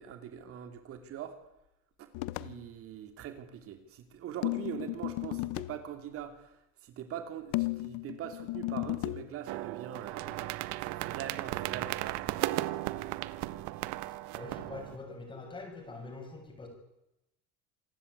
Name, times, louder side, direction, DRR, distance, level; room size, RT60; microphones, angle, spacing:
voice 1, 0.0-1.4 2.0-2.1 2.4-12.7, right 9 dB, 50° right, 8 dB, 2.7 m, -43 dB
sound 1, 2.1-2.6 4.4-5.8 7.5-9.3, left 20 dB, 75° left, 1.0 m, -34 dB
sound 2, 9.5-15.0, right 17 dB, 80° right, 1.5 m, -36 dB
voice 2, 14.3-16.7, left 3 dB, 15° left, 3 dB, 7.1 m, -44 dB
27.0 x 19.5 x 9.8 m, 0.91 s
cardioid pair, 160°, 30 cm